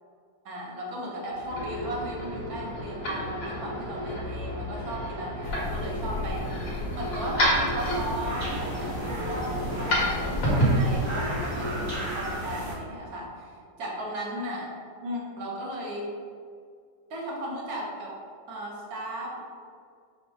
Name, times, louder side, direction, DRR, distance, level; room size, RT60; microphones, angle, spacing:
voice 1, 0.4-6.5 6.9-14.7 15.0-16.1 17.1-18.2 18.5-19.4, right 1 dB, 60° right, -3 dB, 1.3 m, -36 dB
sound 1, 1.3-11.9, equal, 55° left, 1.4 m, -30 dB
sound 2, 5.4-10.5, left 2 dB, 85° left, 1.3 m, -37 dB
sound 3, 7.8-12.7, equal, 35° right, 0.4 m, -34 dB
5.1 x 2.2 x 4.7 m, 2.2 s
omnidirectional pair, 1.8 m